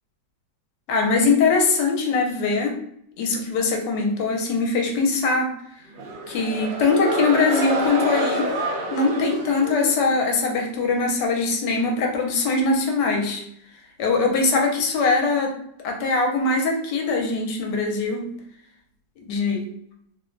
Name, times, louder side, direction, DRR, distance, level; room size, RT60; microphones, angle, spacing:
voice 1, 0.9-2.8 3.2-5.6 6.3-8.5 8.9-13.4 14.0-15.5 15.8-18.3 19.3-19.7, left 3 dB, 75° left, 1 dB, 1.2 m, -22 dB
sound 1, 5.9-10.4, right 1 dB, 85° right, 1.3 m, -28 dB
3.2 x 2.1 x 2.5 m, 0.71 s
omnidirectional pair, 2.0 m